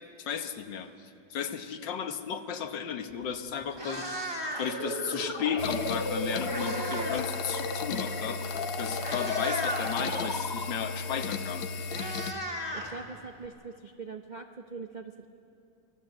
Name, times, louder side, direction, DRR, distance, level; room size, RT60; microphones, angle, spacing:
voice 1, 0.2-0.9 1.3-12.0, left 7 dB, 70° left, 8 dB, 1.7 m, -35 dB
Meow, 3.1-3.3 3.6-4.9 6.0-7.3 7.6-7.8 8.5-8.6 9.0-9.9 11.2-11.3 11.6-13.5, equal, 10° right, 2.6 m, -36 dB
sound 1, 4.6-11.1, left 2 dB, 35° left, 1.7 m, -35 dB
sound 2, 5.6-12.3, left 4 dB, 85° left, 1.8 m, -35 dB
voice 2, 12.7-15.3, right 4 dB, 65° right, 5 dB, 0.4 m, -42 dB
25.0 x 19.0 x 7.9 m, 2.6 s
omnidirectional pair, 2.1 m